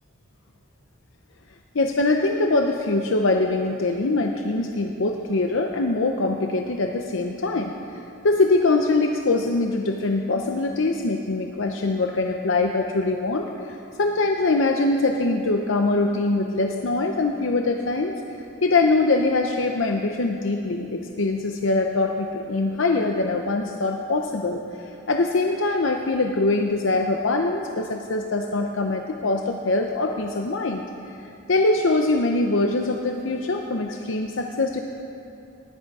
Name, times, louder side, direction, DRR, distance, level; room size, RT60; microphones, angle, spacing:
voice 1, 1.7-7.7 8.2-34.8, left 2 dB, 75° left, 3 dB, 0.7 m, -23 dB
18.0 x 11.0 x 4.8 m, 2.8 s
head